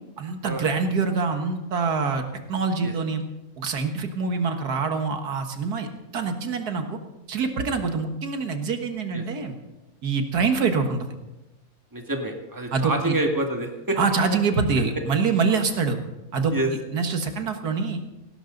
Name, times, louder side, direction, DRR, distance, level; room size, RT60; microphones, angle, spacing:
voice 1, 0.2-3.2 3.6-5.9 6.1-7.0 7.3-9.6 10.0-11.1 12.7-13.2 14.0-16.0 16.3-16.6 16.9-18.0, right 4 dB, 85° right, 6 dB, 2.0 m, -25 dB
voice 2, 11.9-14.0 16.5-16.7, right 2 dB, 10° right, 2 dB, 2.0 m, -27 dB
18.0 x 18.0 x 3.9 m, 1.0 s
omnidirectional pair, 1.6 m